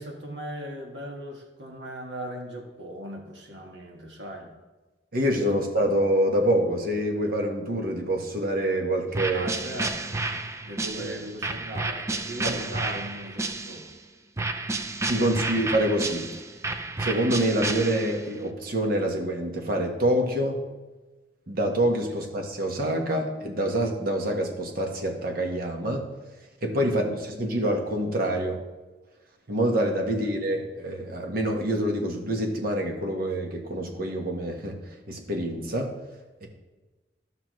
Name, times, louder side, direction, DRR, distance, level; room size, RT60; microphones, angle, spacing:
voice 1, 0.0-4.5 5.5-5.6 9.3-10.2 10.7-13.9 26.8-27.2, right 1 dB, 70° right, 1 dB, 1.6 m, -38 dB
voice 2, 5.1-9.5 12.4-12.5 15.1-16.3 17.0-20.6 21.5-26.1 26.6-28.6 29.5-35.9 36.4-36.5, right 1 dB, 55° right, 2 dB, 1.4 m, -26 dB
sound 1, 9.1-14.0 14.4-18.3, right 3 dB, 15° right, 0.5 m, -31 dB
14.0 x 5.9 x 3.1 m, 1.2 s
head